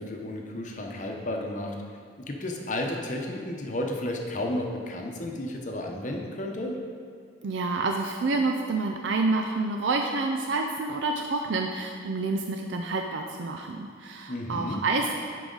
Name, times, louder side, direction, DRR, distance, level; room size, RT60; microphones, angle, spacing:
voice 1, 0.0-1.7 2.2-6.7 14.3-14.8, left 1 dB, 40° left, 1 dB, 0.8 m, -32 dB
voice 2, 7.4-15.2, right 3 dB, 70° right, 3 dB, 0.4 m, -28 dB
11.0 x 4.7 x 3.9 m, 2.1 s
head